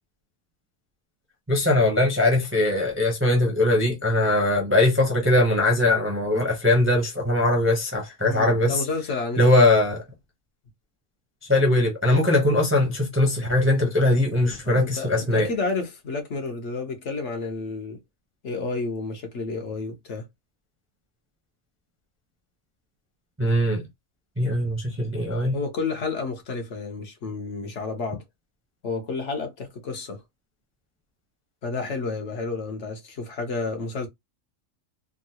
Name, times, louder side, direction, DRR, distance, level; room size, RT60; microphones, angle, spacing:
voice 1, 1.5-8.8 9.4-10.0 11.5-15.5 23.4-23.8 24.4-25.6, left 1 dB, 10° right, 0.6 m, -21 dB
voice 2, 8.2-9.4 14.6-18.0 18.4-20.3 25.5-28.2 28.8-30.2 31.6-34.1, left 3 dB, 60° left, 1.1 m, -30 dB
3.6 x 2.0 x 2.8 m
omnidirectional pair, 1.4 m